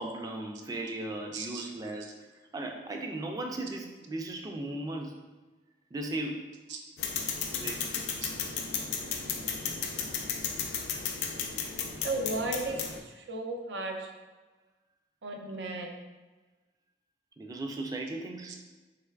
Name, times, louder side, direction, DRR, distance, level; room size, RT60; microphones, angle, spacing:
voice 1, 0.0-2.2 2.5-5.1 5.9-6.5 7.5-7.9 17.4-18.5, right 2 dB, 20° right, 3 dB, 0.3 m, -36 dB
voice 2, 1.3-1.7 6.7-6.8 8.2-8.3 12.0-14.1 15.2-15.9 18.5-18.6, right 2 dB, 85° right, 2 dB, 0.5 m, -35 dB
Bike rear wheel spinning, 7.0-13.0, left 6 dB, 70° left, 0.4 m, -34 dB
3.3 x 3.1 x 2.3 m, 1.2 s
head